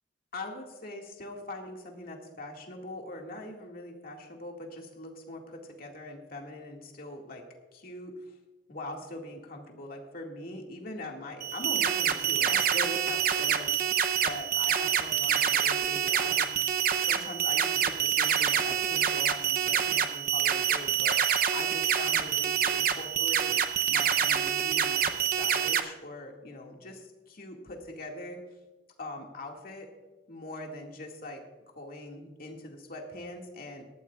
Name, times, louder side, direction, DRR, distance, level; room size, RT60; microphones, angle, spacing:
voice 1, 0.3-7.4 7.7-8.3 8.7-16.7 17.0-23.6 23.9-28.4 29.0-29.9 30.3-31.4 31.8-33.8, left 1 dB, 55° left, 1 dB, 2.1 m, -42 dB
sound 1, 11.4-25.8, right 9 dB, 55° right, 0.7 m, -27 dB
19.0 x 13.5 x 2.4 m, 1.2 s
head